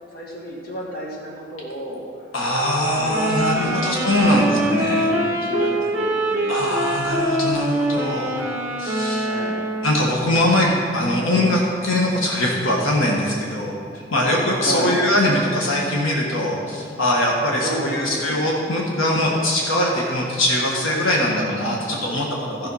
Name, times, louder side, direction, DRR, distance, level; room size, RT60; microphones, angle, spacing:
voice 1, 0.1-2.1 2.8-6.7 9.2-9.6 14.6-14.9 17.6-18.4 22.6-22.7, equal, 50° left, -4 dB, 2.1 m, -32 dB
voice 2, 2.3-5.1 6.5-8.3 8.8-9.3 9.8-13.8 14.1-22.7, left 1 dB, 90° left, -2 dB, 1.5 m, -21 dB
sound 1, 3.1-10.1, right 1 dB, 10° right, 1.5 m, -24 dB
14.0 x 5.7 x 5.5 m, 2.2 s
head